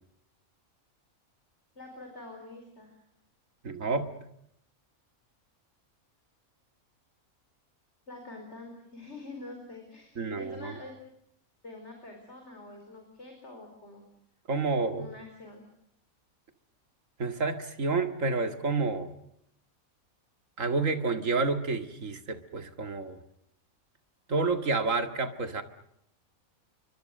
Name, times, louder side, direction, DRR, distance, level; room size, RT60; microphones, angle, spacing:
voice 1, 1.7-3.0 8.1-10.9 11.6-14.0 15.0-15.6, left 2 dB, 50° left, 3 dB, 5.0 m, -46 dB
voice 2, 3.6-4.1 10.2-10.8 14.5-15.1 17.2-19.1 20.6-23.2 24.3-25.6, right 3 dB, 60° right, 8 dB, 2.4 m, -29 dB
29.0 x 24.0 x 6.7 m, 0.74 s
omnidirectional pair, 1.5 m